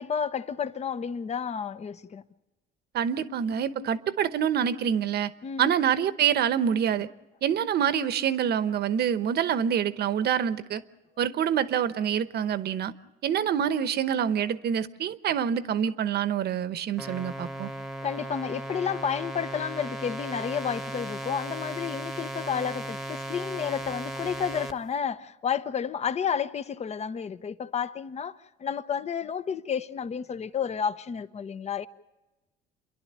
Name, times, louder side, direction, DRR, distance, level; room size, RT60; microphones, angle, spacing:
voice 1, 0.0-2.2 5.4-5.7 18.0-31.9, left 7 dB, 35° left, 0.9 m, -31 dB
voice 2, 2.9-5.3 5.6-7.1 7.4-10.8 11.2-12.9 13.2-17.7, right 8 dB, 50° right, 1.0 m, -26 dB
sound 1, 17.0-24.7, right 1 dB, ahead, 1.2 m, -36 dB
29.0 x 11.5 x 10.0 m
cardioid pair, 120°, 21 cm